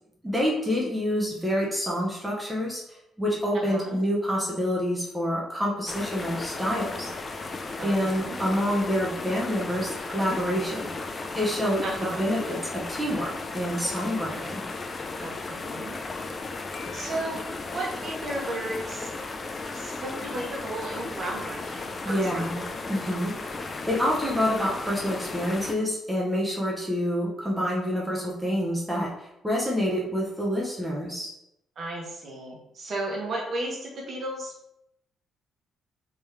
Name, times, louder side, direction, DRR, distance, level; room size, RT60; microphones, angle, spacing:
voice 1, 0.2-2.8 3.2-7.1 7.8-14.7 22.0-31.3, equal, 10° right, -4 dB, 0.9 m, -27 dB
voice 2, 3.5-4.0 7.8-8.4 11.8-12.2 15.2-16.0 16.9-17.5 17.7-19.1 19.7-22.7 31.8-34.5, right 1 dB, 55° right, -1 dB, 1.2 m, -34 dB
sound 1, 5.9-25.8, left 3 dB, 35° left, 0.4 m, -35 dB
3.6 x 3.0 x 3.4 m, 0.83 s
cardioid pair, 90°, 0 cm